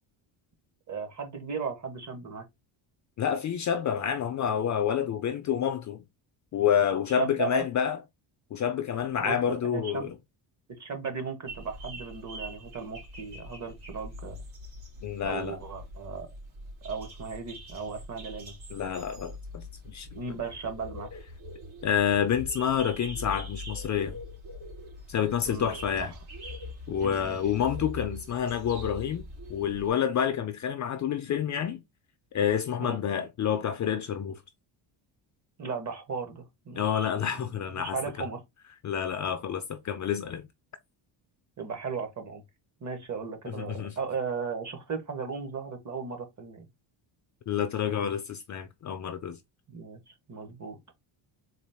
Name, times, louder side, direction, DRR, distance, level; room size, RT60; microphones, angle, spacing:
voice 1, 0.9-2.5 7.1-7.7 9.2-10.1 10.8-14.4 15.2-16.3 16.8-18.5 20.1-21.1 25.5-26.1 27.0-27.4 32.8-33.0 35.6-38.4 41.6-42.4 42.8-46.7 49.7-50.8, right 5 dB, 35° right, 1.0 m, -36 dB
voice 2, 3.2-6.0 6.5-8.0 8.5-10.1 15.0-15.6 18.7-20.1 21.8-24.2 25.1-26.1 26.9-29.2 29.5-31.8 32.3-34.4 36.8-38.0 38.8-40.4 43.5-44.0 47.5-49.4, left 8 dB, 40° left, 0.4 m, -28 dB
sound 1, 11.5-29.9, left 1 dB, 75° right, 2.6 m, -42 dB
4.0 x 2.4 x 3.4 m
cardioid pair, 130°, 48 cm